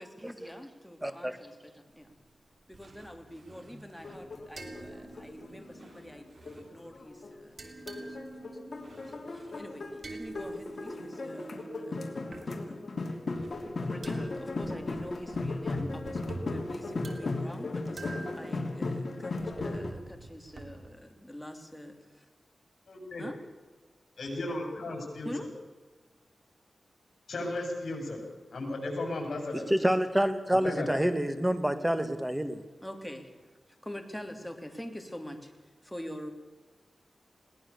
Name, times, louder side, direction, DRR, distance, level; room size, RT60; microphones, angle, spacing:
voice 1, 0.0-2.2 2.7-12.9 13.8-22.3 23.2-23.4 25.2-25.5 32.8-33.3 33.8-35.5 35.8-36.3, equal, 5° left, 5 dB, 3.1 m, -45 dB
voice 2, 1.0-1.4 29.5-32.6, equal, 10° right, 10 dB, 1.9 m, -28 dB
sound 1, 1.9-2.4 2.7-7.1 7.4-12.5 13.1-20.9, right 3 dB, 65° right, 3.0 m, -47 dB
sound 2, 3.9-7.3 7.9-19.9, left 3 dB, 55° left, 2.9 m, -36 dB
voice 3, 22.9-23.2 24.2-25.3 27.3-28.2 28.5-29.7 30.6-31.0, left 2 dB, 70° left, 2 dB, 7.3 m, -35 dB
21.5 x 18.0 x 7.0 m, 1.3 s
wide cardioid pair, 70°, 0 cm